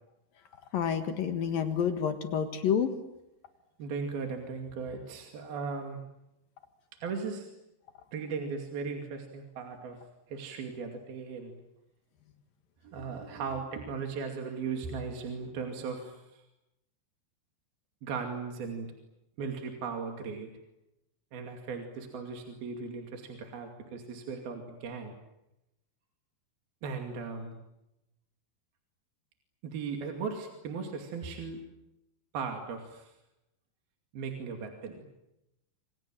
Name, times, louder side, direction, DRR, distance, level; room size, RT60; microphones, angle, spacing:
voice 1, 0.7-2.9, left 8 dB, 60° left, 8 dB, 2.9 m, -29 dB
voice 2, 3.8-6.0 7.0-7.5 8.1-10.0 10.3-11.5 12.8-16.4 18.0-18.9 19.4-20.5 21.3-25.2 26.8-27.6 29.6-31.6 32.3-33.1 34.1-35.0, right 5 dB, 60° right, 4 dB, 4.1 m, -37 dB
28.0 x 27.0 x 7.6 m, 0.89 s
omnidirectional pair, 5.3 m